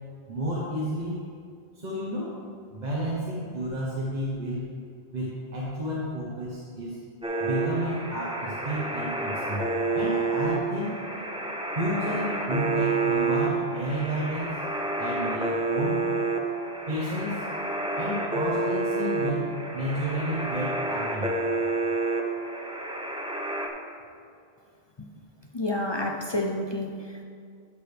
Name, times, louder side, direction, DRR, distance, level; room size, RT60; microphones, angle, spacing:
voice 1, 0.3-1.2 1.7-2.4 2.7-4.6 5.1-7.0 7.4-9.7 9.9-11.0 11.7-14.5 15.0-16.1 16.9-17.5 17.9-21.3, equal, 45° right, -6 dB, 1.3 m, -31 dB
sound 1, 7.2-23.7, right 3 dB, 5° right, 0.6 m, -29 dB
voice 2, 25.5-27.2, left 1 dB, 35° left, 1 dB, 0.4 m, -29 dB
12.5 x 6.7 x 3.4 m, 2.3 s
omnidirectional pair, 1.1 m